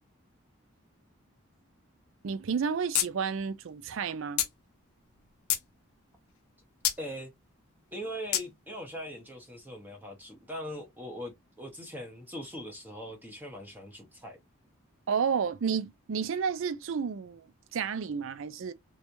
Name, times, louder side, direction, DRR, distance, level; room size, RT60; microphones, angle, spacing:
voice 1, 2.2-4.4 15.1-18.7, right 6 dB, 65° right, 0.4 m, -31 dB
sound 1, 2.9-3.1 3.4-3.5 4.4-4.5 5.1-5.7 6.8-7.0 8.3-8.5, left 11 dB, 80° left, 0.8 m, -27 dB
voice 2, 7.0-7.3 7.9-14.4, equal, 10° right, 0.7 m, -41 dB
3.4 x 3.0 x 2.5 m
head